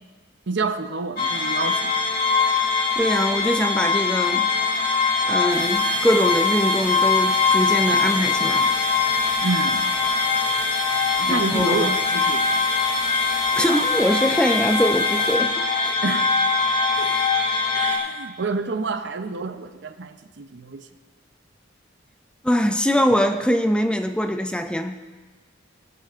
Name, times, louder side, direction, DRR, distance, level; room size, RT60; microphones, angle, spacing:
voice 1, 0.5-2.0 9.4-9.9 11.2-12.7 16.0-16.4 17.0-17.2 17.7-20.9, right 3 dB, 60° right, 9 dB, 0.7 m, -28 dB
sound 1, 1.2-18.0, left 4 dB, 50° left, 1.9 m, -22 dB
voice 2, 2.9-4.5 5.2-8.7 11.3-12.0 13.6-15.9 17.0-17.3 22.4-25.0, equal, 5° left, 7 dB, 0.4 m, -23 dB
sound 2, 5.5-15.4, right 2 dB, 15° right, 2.5 m, -37 dB
19.0 x 10.5 x 2.5 m, 1.3 s
head